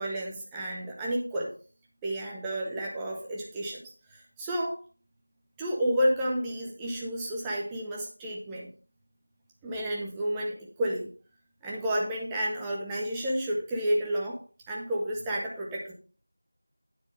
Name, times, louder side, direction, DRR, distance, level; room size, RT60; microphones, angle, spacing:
voice 1, 0.0-1.5 2.0-3.8 4.1-4.8 5.6-8.7 9.6-11.1 11.6-14.4 14.7-15.9, equal, 5° right, -3 dB, 0.8 m, -31 dB
9.5 x 7.6 x 3.3 m, 0.37 s
figure-of-eight pair, 175°, 0 cm